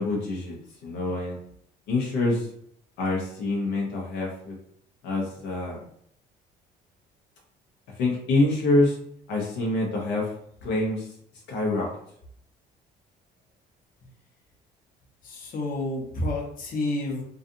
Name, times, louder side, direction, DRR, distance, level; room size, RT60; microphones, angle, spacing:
voice 1, 0.0-1.4 1.9-2.5 3.0-4.6 5.0-5.8 8.0-9.0 9.3-10.3 10.6-11.1 11.5-11.9, left 2 dB, 85° left, -2 dB, 0.6 m, -26 dB
voice 2, 15.2-17.2, left 2 dB, 55° left, 0 dB, 0.8 m, -29 dB
2.5 x 2.4 x 2.5 m, 0.68 s
cardioid pair, 110°, 17 cm